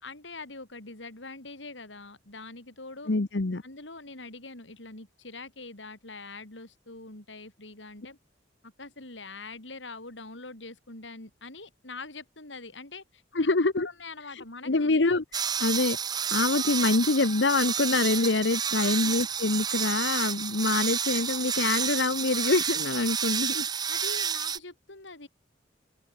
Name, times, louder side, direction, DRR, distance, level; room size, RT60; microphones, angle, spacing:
voice 1, 0.0-3.2 3.6-8.2 8.6-13.5 13.8-15.0 18.8-19.2 23.8-25.3, left 3 dB, 90° left, 5.2 m, -44 dB
voice 2, 3.1-3.6 13.3-13.9 14.3-23.7, left 3 dB, 70° left, 1.0 m, -26 dB
sound 1, 15.3-24.6, right 7 dB, 20° right, 0.4 m, -30 dB
open air
head